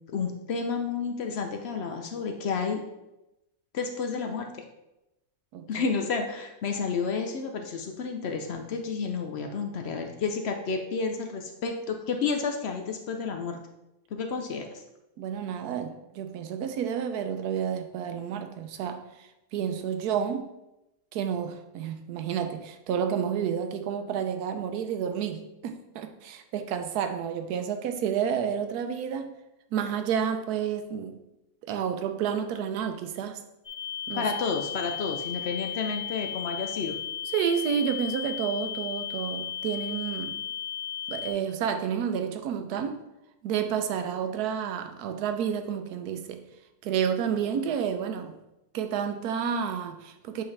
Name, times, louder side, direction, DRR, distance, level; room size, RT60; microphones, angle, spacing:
voice 1, 0.1-2.8 3.7-4.6 5.7-13.6 14.1-14.8 34.2-37.0, left 5 dB, 70° left, 4 dB, 0.6 m, -31 dB
voice 2, 5.5-5.8 15.2-20.5 21.1-29.3 29.7-31.2 31.7-33.4 34.1-34.3 37.3-40.4 41.1-43.0 43.4-46.4 46.8-48.4 48.7-50.4, right 8 dB, 80° right, 7 dB, 1.1 m, -30 dB
sound 1, 33.6-41.3, left 9 dB, 55° left, 2.0 m, -35 dB
7.8 x 3.7 x 3.3 m, 0.93 s
omnidirectional pair, 1.7 m